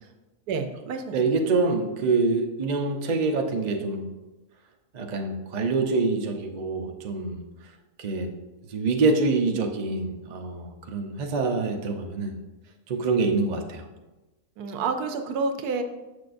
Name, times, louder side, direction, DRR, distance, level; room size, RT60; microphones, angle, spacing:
voice 1, 0.5-1.2 14.6-15.8, right 4 dB, 80° right, 6 dB, 1.2 m, -29 dB
voice 2, 1.1-4.1 4.9-7.4 8.0-8.3 8.7-12.3 12.9-13.8, right 3 dB, 50° right, 3 dB, 0.5 m, -25 dB
6.9 x 6.4 x 2.5 m, 1.1 s
omnidirectional pair, 1.6 m